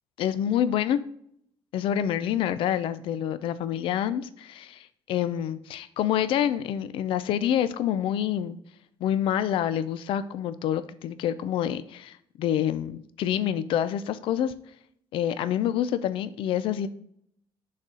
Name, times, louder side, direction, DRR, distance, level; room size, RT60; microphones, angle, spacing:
voice 1, 0.2-1.0 1.7-8.6 9.0-14.5 15.1-16.9, left 10 dB, 70° left, 14 dB, 0.5 m, -27 dB
6.3 x 4.2 x 6.2 m, 0.68 s
cardioid pair, 175°, 9 cm